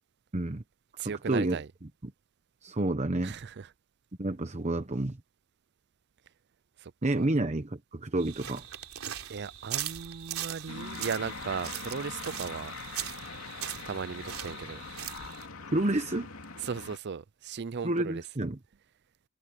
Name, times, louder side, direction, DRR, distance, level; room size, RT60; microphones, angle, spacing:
voice 1, 0.3-0.6 1.3-1.6 2.6-3.4 4.2-5.2 7.0-8.6 15.7-16.3 17.8-18.6, right 1 dB, 30° right, 1.0 m, -29 dB
voice 2, 1.0-1.7 3.2-3.7 6.8-7.3 9.3-12.7 13.8-14.8 16.6-18.2, right 6 dB, 50° right, 0.5 m, -37 dB
sound 1, 8.2-15.5, right 11 dB, 85° right, 3.5 m, -40 dB
sound 2, 10.7-17.0, left 4 dB, 75° left, 2.9 m, -42 dB
head